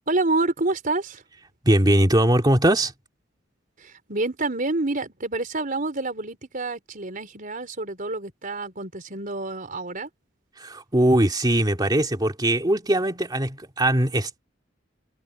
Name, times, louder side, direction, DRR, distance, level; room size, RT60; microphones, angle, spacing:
voice 1, 0.1-1.2 3.8-10.1, right 2 dB, 45° right, 4.5 m, -28 dB
voice 2, 1.6-2.9 10.6-14.4, right 1 dB, 20° right, 2.6 m, -21 dB
head